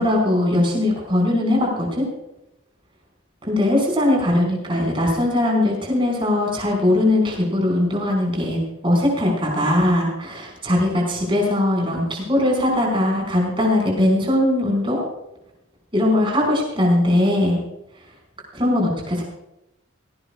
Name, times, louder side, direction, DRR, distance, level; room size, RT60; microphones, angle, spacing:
voice 1, 0.0-2.1 3.5-15.0 15.9-17.6 18.5-19.2, left 1 dB, 25° right, -1 dB, 5.4 m, -20 dB
18.5 x 17.5 x 2.5 m, 0.88 s
head